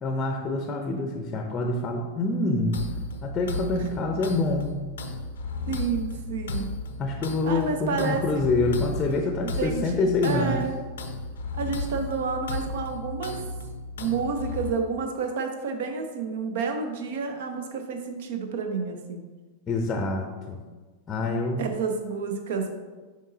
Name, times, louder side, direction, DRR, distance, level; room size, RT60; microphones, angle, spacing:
voice 1, 0.0-2.8 3.2-4.8 7.0-10.6 19.7-20.6 21.1-21.7, left 2 dB, 25° left, 3 dB, 0.6 m, -26 dB
sound 1, 2.7-14.7, left 2 dB, 65° left, 0.5 m, -34 dB
voice 2, 5.7-6.7 7.5-8.4 9.4-10.7 11.6-13.4 14.0-19.2 21.6-22.7, right 5 dB, 55° right, 5 dB, 0.8 m, -30 dB
7.3 x 5.1 x 2.7 m, 1.3 s
figure-of-eight pair, 90°, 0 cm